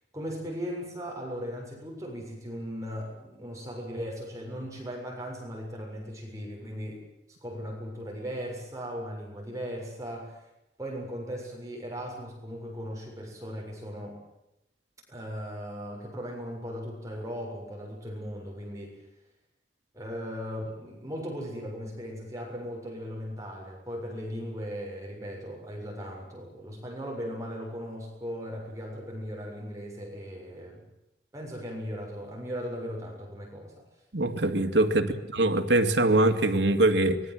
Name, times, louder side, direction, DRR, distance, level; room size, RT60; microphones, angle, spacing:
voice 1, 0.1-7.0 7.4-10.5 10.8-14.2 15.1-19.0 19.9-30.8 31.3-33.7 35.0-35.2, equal, 20° right, 7.1 m, -38 dB
voice 2, 34.1-37.2, right 2 dB, 85° right, 2.3 m, -23 dB
24.5 x 22.5 x 7.9 m
head